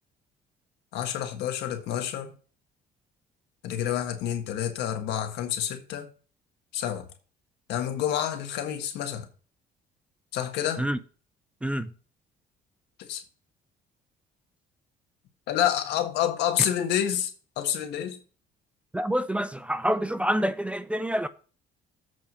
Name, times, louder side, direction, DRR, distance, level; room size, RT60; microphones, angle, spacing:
voice 1, 0.9-2.3 3.6-6.1 6.7-7.1 7.7-9.3 10.3-10.9 13.0-13.2 15.5-18.2, left 10 dB, 85° left, 1.6 m, -28 dB
voice 2, 11.6-11.9 18.9-21.3, equal, 5° right, 0.5 m, -27 dB
7.8 x 4.8 x 6.1 m
cardioid pair, 110°, 17 cm